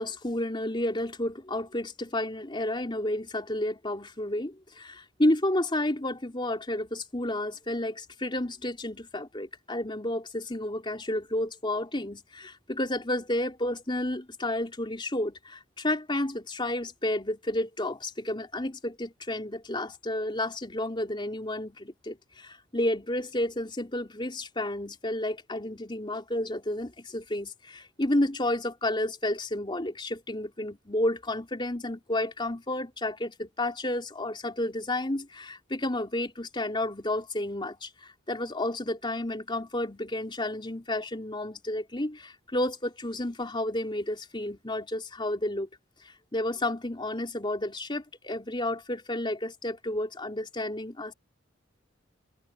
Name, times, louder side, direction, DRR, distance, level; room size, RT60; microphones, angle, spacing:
voice 1, 0.0-45.7 46.0-51.1, left 1 dB, 25° left, 3.7 m, -31 dB
head